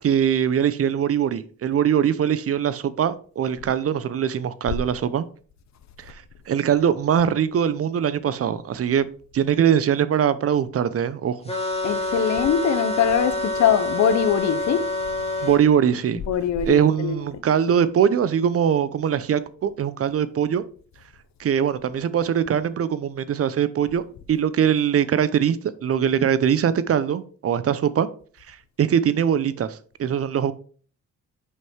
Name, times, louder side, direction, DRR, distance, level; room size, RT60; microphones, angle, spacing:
voice 1, 0.0-5.2 6.0-9.1 9.3-11.4 15.4-16.2 16.7-20.6 21.4-24.0 24.3-28.1 28.5-30.5, right 8 dB, 50° right, 0.7 m, -22 dB
sound 1, 11.5-15.6, left 2 dB, 20° left, 2.0 m, -27 dB
voice 2, 11.8-14.9 16.1-17.4, left 8 dB, 65° left, 0.9 m, -22 dB
6.5 x 5.3 x 4.6 m
cardioid pair, 90°, 30 cm